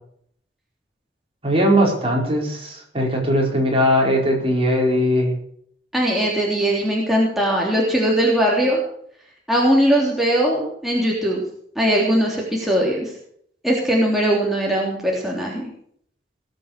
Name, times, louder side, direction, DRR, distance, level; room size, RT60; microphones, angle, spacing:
voice 1, 1.4-5.3, equal, 30° right, -1 dB, 4.7 m, -19 dB
voice 2, 5.9-8.8 9.5-11.4 11.7-13.1 13.6-15.7, equal, ahead, -4 dB, 3.2 m, -20 dB
19.5 x 7.9 x 6.7 m, 0.64 s
head